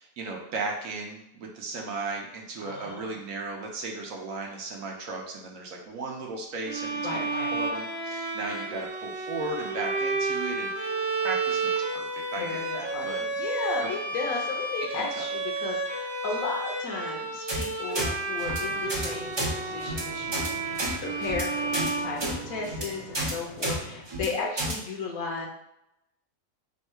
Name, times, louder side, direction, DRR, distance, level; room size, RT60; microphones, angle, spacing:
voice 1, 0.0-13.2 14.9-15.2, right 3 dB, 70° right, 1 dB, 1.1 m, -36 dB
voice 2, 2.6-3.2 7.0-7.6 12.3-25.5, left 4 dB, 75° left, 0 dB, 1.2 m, -35 dB
Bowed string instrument, 6.6-22.7, right 3 dB, 50° right, 1.0 m, -31 dB
sound 1, 17.5-17.6 17.9-18.1 18.4-18.6 18.9-19.1 19.3-19.5 19.8-20.0 20.3-20.5 20.8-20.9 21.2-21.4 21.7-21.9 22.2-22.3 22.6-22.8 23.1-23.3 23.6-23.8 24.1-24.3 24.6-24.7, right 1 dB, 30° right, 0.5 m, -30 dB
sound 2, 18.4-24.0, left 2 dB, 45° left, 0.6 m, -45 dB
3.6 x 2.3 x 4.2 m, 0.82 s
omnidirectional pair, 1.5 m